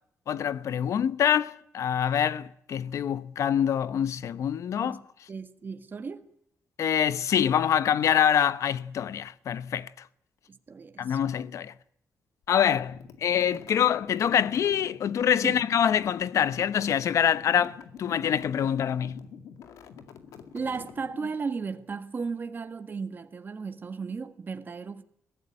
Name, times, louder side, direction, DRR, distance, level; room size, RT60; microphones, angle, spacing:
voice 1, 0.3-5.0 6.8-9.9 11.0-11.7 12.5-19.2, left 9 dB, 70° left, 1.0 m, -25 dB
voice 2, 4.8-6.3 10.7-11.3 15.4-15.6 18.2-18.3 20.5-25.0, right 5 dB, 35° right, 1.7 m, -35 dB
sound 1, 12.6-21.6, left 7 dB, 90° left, 2.2 m, -47 dB
23.0 x 16.5 x 9.9 m
cardioid pair, 115°, 5 cm